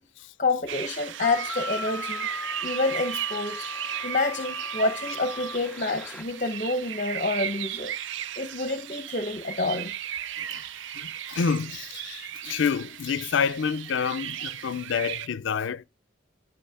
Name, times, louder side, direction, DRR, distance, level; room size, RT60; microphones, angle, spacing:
voice 1, 0.4-2.3 2.6-3.7 4.0-7.9 8.4-9.9, left 2 dB, 40° left, 0.8 m, -28 dB
sound 1, 0.7-15.3, right 11 dB, 70° right, 0.4 m, -36 dB
sound 2, 1.2-6.2, left 2 dB, 5° left, 0.5 m, -37 dB
voice 2, 10.4-10.7 10.9-15.9, left 6 dB, 75° left, 0.4 m, -28 dB
11.5 x 5.2 x 3.5 m
head